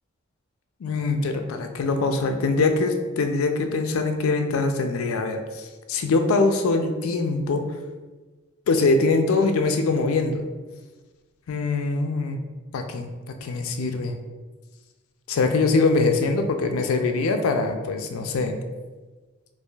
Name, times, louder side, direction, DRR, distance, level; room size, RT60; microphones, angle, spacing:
voice 1, 0.8-7.6 8.7-10.4 11.5-12.4 12.7-13.1 13.4-14.1 15.3-18.6, left 3 dB, 85° left, 6 dB, 0.4 m, -23 dB
4.7 x 2.5 x 2.3 m, 1.3 s
head